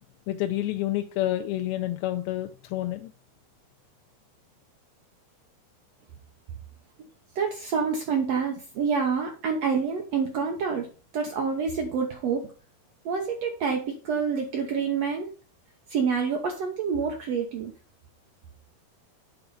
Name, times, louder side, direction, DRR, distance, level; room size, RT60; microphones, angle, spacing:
voice 1, 0.3-3.1, left 14 dB, 90° left, 5 dB, 2.5 m, -29 dB
voice 2, 7.3-10.9 11.1-12.5 13.0-15.3 15.9-17.7, right 5 dB, 80° right, 2 dB, 1.5 m, -27 dB
8.8 x 4.0 x 5.6 m, 0.38 s
omnidirectional pair, 4.3 m